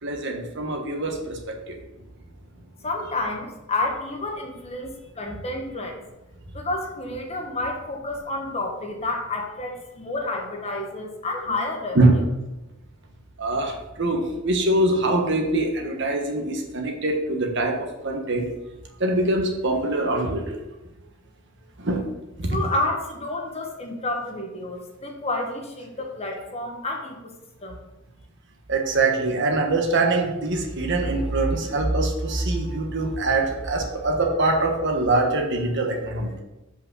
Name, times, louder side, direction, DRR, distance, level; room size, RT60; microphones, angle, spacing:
voice 1, 0.0-1.8 11.9-12.1 13.4-18.5 19.0-20.6 21.8-22.1 22.4-22.6 28.7-36.4, right 2 dB, 60° right, 2 dB, 1.3 m, -23 dB
voice 2, 2.8-6.0 6.5-12.0 22.5-27.2 27.6-27.8, left 2 dB, 30° left, 2 dB, 1.2 m, -30 dB
5.6 x 5.1 x 6.2 m, 0.98 s
head